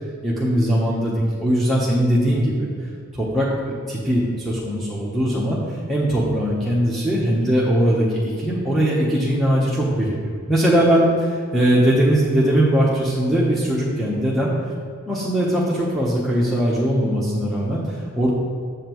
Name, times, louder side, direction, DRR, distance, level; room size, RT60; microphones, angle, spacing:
voice 1, 0.2-2.7 3.1-5.6 5.9-10.2 10.5-14.5 15.1-18.3, equal, ahead, -6 dB, 0.8 m, -20 dB
7.5 x 7.4 x 3.0 m, 2.2 s
head